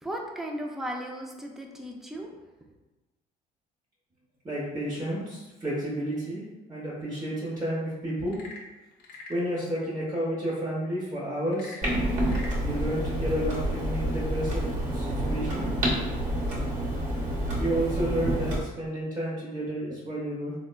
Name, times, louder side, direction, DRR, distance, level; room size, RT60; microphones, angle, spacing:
voice 1, 0.0-2.4, equal, ahead, 0 dB, 0.3 m, -36 dB
voice 2, 4.4-6.4 6.7-8.3 9.3-11.9 12.6-15.7 17.6-20.5, right 1 dB, 20° right, -9 dB, 0.7 m, -31 dB
Frog / Percussion / Wood, 8.2-9.5 11.5-12.6, left 2 dB, 65° left, 0.5 m, -44 dB
Clock, 11.8-18.6, right 1 dB, 45° right, 1.0 m, -28 dB
3.5 x 2.1 x 2.2 m, 1.1 s
cardioid pair, 110°, 17 cm